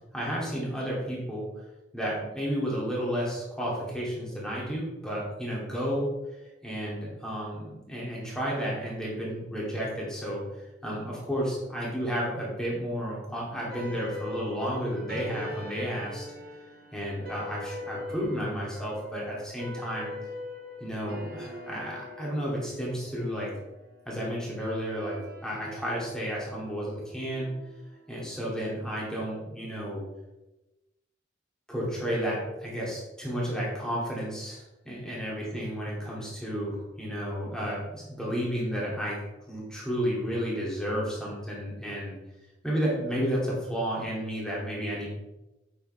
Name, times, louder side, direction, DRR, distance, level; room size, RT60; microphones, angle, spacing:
voice 1, 0.1-1.5 1.9-6.1 6.6-16.2 16.9-20.1 20.8-23.5 24.1-27.5 28.1-30.0 31.7-39.2 39.5-42.2 42.6-45.1, equal, 5° left, -5 dB, 2.5 m, -32 dB
sound 1, 13.7-28.2, left 1 dB, 50° right, 1.6 m, -42 dB
8.6 x 6.6 x 3.3 m, 1.0 s
head